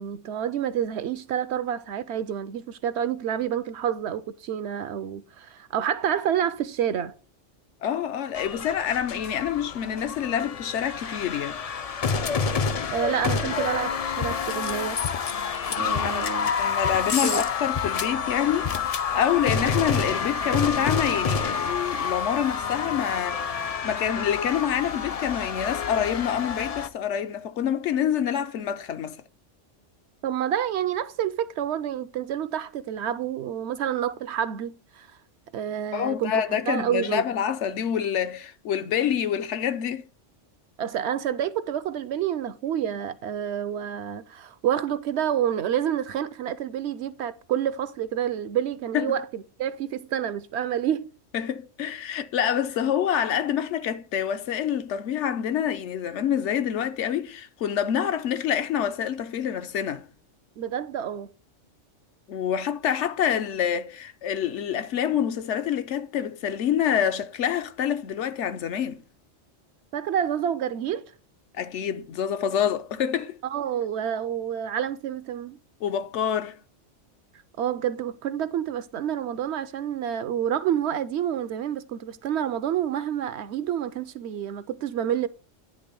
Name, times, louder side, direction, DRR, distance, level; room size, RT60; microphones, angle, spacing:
voice 1, 0.0-7.1 12.9-15.0 15.7-16.5 17.2-17.4 30.2-35.1 35.5-37.2 40.8-51.1 60.6-61.3 69.9-71.0 73.5-75.6 77.6-85.3, right 9 dB, 70° right, 0.8 m, -28 dB
voice 2, 7.8-11.6 15.9-16.3 16.6-29.2 35.9-40.0 48.9-49.1 51.3-60.1 62.3-69.0 71.6-73.4 75.8-76.6, left 9 dB, 75° left, 0.9 m, -27 dB
sound 1, 8.3-26.9, left 6 dB, 55° left, 0.4 m, -28 dB
9.9 x 3.3 x 6.7 m
omnidirectional pair, 1.3 m